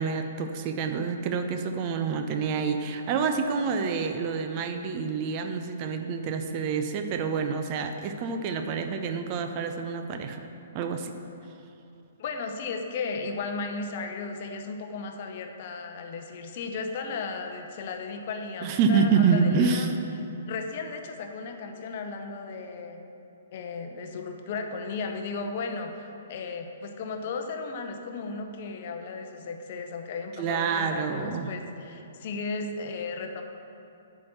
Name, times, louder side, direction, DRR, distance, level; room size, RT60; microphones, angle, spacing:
voice 1, 0.0-10.4 10.7-11.1 18.6-19.9 30.4-31.5, right 5 dB, 30° right, 6 dB, 0.5 m, -27 dB
voice 2, 12.2-20.0 20.5-23.0 23.5-33.4, left 4 dB, 45° left, 5 dB, 0.7 m, -35 dB
8.5 x 4.6 x 7.0 m, 2.7 s
figure-of-eight pair, 120°, 0 cm